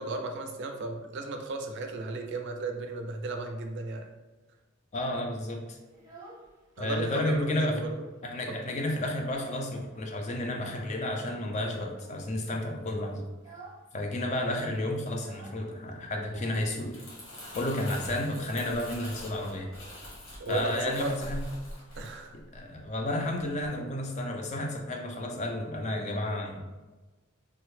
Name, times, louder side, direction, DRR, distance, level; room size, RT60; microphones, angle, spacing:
voice 1, 0.0-4.1 6.8-8.1 8.5-8.6 20.4-21.1 22.0-22.3, right 3 dB, 60° right, 4 dB, 0.4 m, -35 dB
voice 2, 4.9-5.8 6.8-7.8 8.2-13.2 13.9-17.0 17.6-19.7 20.5-21.5 22.3-26.6, left 1 dB, 35° left, 2 dB, 0.4 m, -32 dB
Child speech kid speaking, 5.8-6.9 7.2-8.0 8.3-8.4 8.7-9.8 10.5-10.9 11.8-12.3 12.7-12.9 13.3-13.9 14.1-14.2 14.4-17.2, right 3 dB, 20° right, 0.7 m, -52 dB
Crumpling crinkling, 16.6-23.0 23.4-23.7, left 1 dB, 90° left, 1.1 m, -44 dB
3.2 x 2.0 x 3.1 m, 1.2 s
head